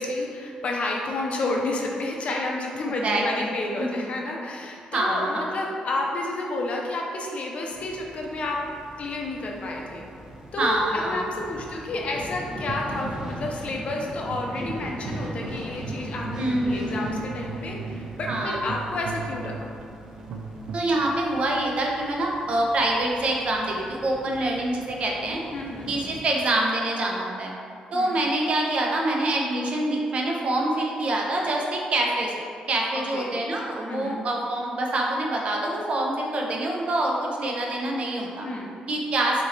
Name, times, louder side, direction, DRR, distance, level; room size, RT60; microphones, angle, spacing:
voice 1, 0.0-8.6 9.0-10.0 10.5-19.5 25.5-25.9 27.9-28.2 33.1-33.4 33.9-34.2 38.4-38.8, left 2 dB, 50° left, -1 dB, 0.7 m, -30 dB
voice 2, 3.0-3.5 3.8-4.0 4.9-5.5 10.6-11.2 16.4-17.2 18.3-18.8 20.7-25.4 25.9-27.5 27.9-38.5 38.9-39.5, right 1 dB, 50° right, -1 dB, 0.7 m, -26 dB
sound 1, 7.7-26.1, equal, 25° right, 0.9 m, -40 dB
sound 2, 12.5-20.9, right 4 dB, 80° right, 0.4 m, -38 dB
5.2 x 2.9 x 3.2 m, 2.4 s
cardioid pair, 115°, 3 cm